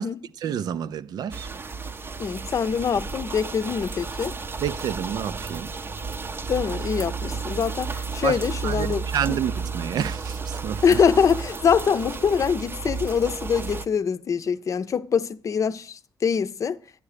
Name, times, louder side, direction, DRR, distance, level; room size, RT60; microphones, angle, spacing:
voice 1, 0.4-1.5 4.6-5.7 8.2-11.0, right 9 dB, 80° right, 0.5 m, -29 dB
sound 1, 1.3-13.9, right 4 dB, 35° right, 0.6 m, -32 dB
voice 2, 2.2-4.3 6.5-9.4 10.8-16.8, left 6 dB, 50° left, 0.6 m, -24 dB
11.5 x 9.7 x 5.0 m
cardioid pair, 95°, 7 cm